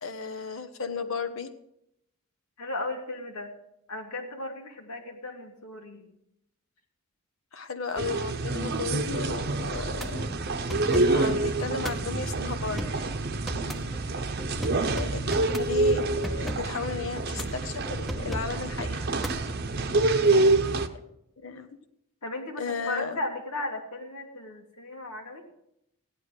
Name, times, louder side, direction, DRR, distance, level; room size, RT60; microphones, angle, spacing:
voice 1, 0.0-1.5 7.5-10.2 10.9-13.0 14.7-15.3 15.5-19.0 20.9-21.0 21.4-21.7 22.6-23.2, left 4 dB, 60° left, 8 dB, 1.2 m, -35 dB
voice 2, 2.6-3.5 3.9-6.1 13.5-13.9 19.7-20.1 22.2-25.4, left 2 dB, 90° left, 2 dB, 2.7 m, -36 dB
sound 1, 8.0-20.9, right 2 dB, 45° right, 0.8 m, -27 dB
sound 2, 9.7-19.8, equal, ahead, 0.7 m, -38 dB
16.5 x 11.0 x 4.9 m, 0.79 s
head